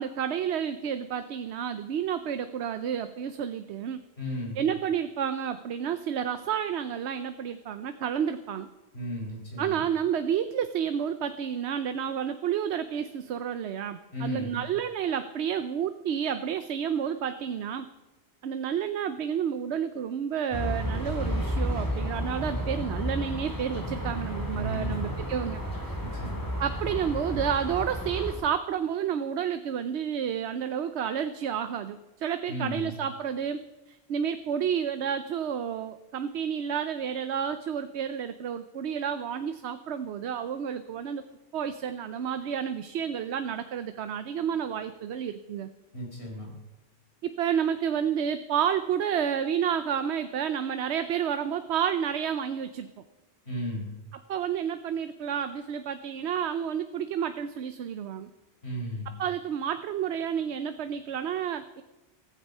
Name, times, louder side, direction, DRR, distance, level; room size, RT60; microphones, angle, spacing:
voice 1, 0.0-4.0 4.6-8.7 9.6-17.9 18.4-26.0 26.6-33.6 33.9-41.2 41.5-45.7 47.2-52.9 54.1-58.3 59.1-61.8, right 8 dB, 80° right, 10 dB, 0.9 m, -30 dB
voice 2, 4.2-4.6 8.9-9.8 14.1-14.6 24.5-25.0 26.0-26.5 32.5-32.9 45.9-46.5 53.5-53.9 58.6-59.1, equal, 70° left, -1 dB, 4.8 m, -35 dB
sound 1, 20.5-28.3, equal, 20° left, 2.8 m, -32 dB
15.0 x 14.5 x 5.4 m, 1.1 s
omnidirectional pair, 1.1 m